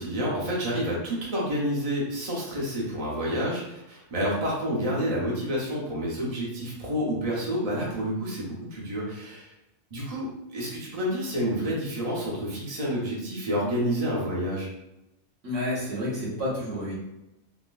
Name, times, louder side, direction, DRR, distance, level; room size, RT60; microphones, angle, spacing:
voice 1, 0.0-9.5 9.9-14.7, equal, 35° right, -5 dB, 0.8 m, -29 dB
voice 2, 15.4-16.9, left 1 dB, 80° right, -7 dB, 1.6 m, -30 dB
3.8 x 2.2 x 2.5 m, 0.90 s
omnidirectional pair, 1.3 m